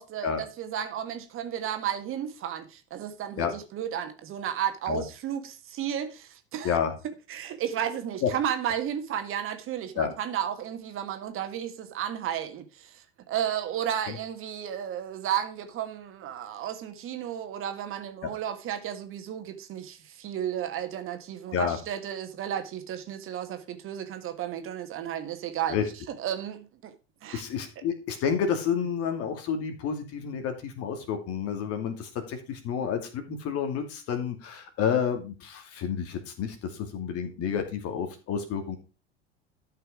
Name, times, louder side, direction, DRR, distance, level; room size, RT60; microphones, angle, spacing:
voice 1, 0.0-6.8 7.3-26.9 27.2-27.4 37.2-37.3, right 10 dB, 40° right, 1.7 m, -33 dB
voice 2, 27.3-38.8, left 7 dB, 45° left, 2.5 m, -30 dB
12.5 x 5.6 x 4.8 m
figure-of-eight pair, 75°, 33 cm